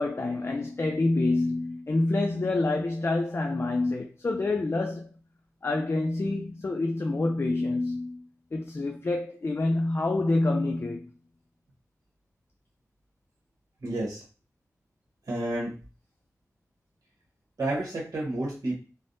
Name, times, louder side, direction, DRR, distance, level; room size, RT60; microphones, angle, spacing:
voice 1, 0.0-5.1 5.6-11.1, left 2 dB, 40° left, 0.3 m, -27 dB
voice 2, 13.8-14.2 15.3-15.7 17.6-18.8, right 1 dB, 80° right, 1.1 m, -30 dB
3.3 x 2.1 x 2.6 m
wide cardioid pair, 80°, 6 cm